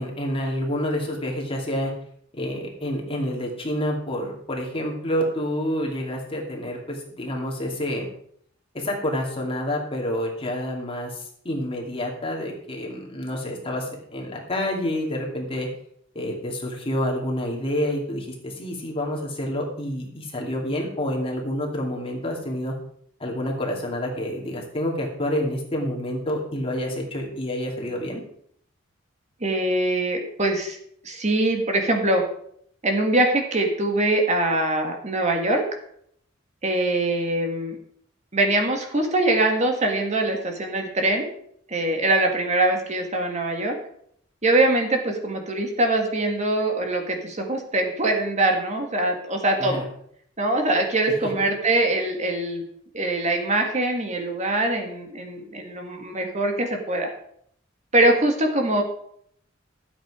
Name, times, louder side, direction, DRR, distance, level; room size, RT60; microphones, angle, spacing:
voice 1, 0.0-1.9 2.3-8.1 8.7-15.7 16.1-22.7 23.2-28.2 49.6-49.8, equal, 30° left, -1 dB, 2.5 m, -28 dB
voice 2, 29.4-30.8 31.0-32.2 32.8-35.6 36.6-37.8 38.3-41.3 41.7-43.7 44.4-49.8 50.4-52.6 52.9-57.1 57.9-58.8, right 2 dB, 35° right, 3 dB, 1.8 m, -23 dB
13.0 x 8.0 x 4.9 m, 0.67 s
head